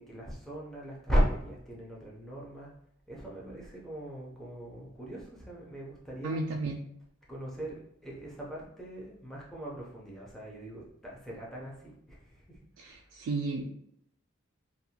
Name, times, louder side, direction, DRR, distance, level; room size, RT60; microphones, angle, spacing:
voice 1, 0.0-2.7 3.1-6.4 7.3-12.6 12.9-13.2, equal, ahead, -5 dB, 0.5 m, -36 dB
voice 2, 6.2-6.8 12.8-13.7, right 3 dB, 80° right, 1 dB, 0.3 m, -33 dB
2.6 x 2.2 x 2.8 m, 0.73 s
head